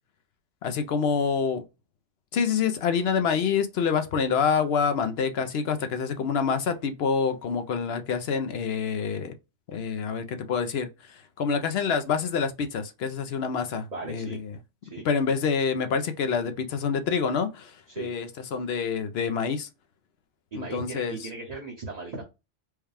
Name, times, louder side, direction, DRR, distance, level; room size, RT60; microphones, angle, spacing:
voice 1, 0.6-1.6 2.3-9.3 9.7-14.4 15.0-19.7 20.6-21.2, left 6 dB, 65° left, 0.8 m, -27 dB
voice 2, 13.9-14.4 14.8-15.1 17.9-18.1 20.5-22.2, right 3 dB, 35° right, 1.1 m, -37 dB
4.7 x 2.2 x 3.3 m
omnidirectional pair, 1.2 m